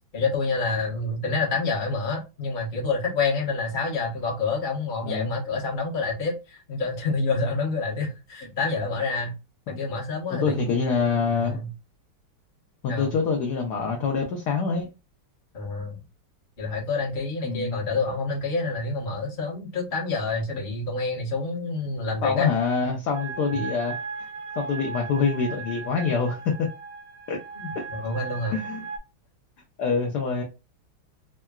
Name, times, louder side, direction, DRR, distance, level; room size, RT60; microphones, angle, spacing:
voice 1, 0.1-9.3 9.7-11.7 12.9-13.2 15.5-16.0 16.6-22.5 23.5-23.6 27.6-28.6, left 3 dB, 40° left, 0.6 m, -28 dB
voice 2, 10.3-11.6 12.8-14.9 17.4-17.8 22.2-24.0 24.6-26.7 27.3-27.4 27.7-27.9 28.5-28.8 29.8-30.4, left 5 dB, 70° left, 1.0 m, -25 dB
sound 1, 23.1-29.0, right 4 dB, 85° right, 1.4 m, -37 dB
3.6 x 2.2 x 2.2 m
omnidirectional pair, 2.2 m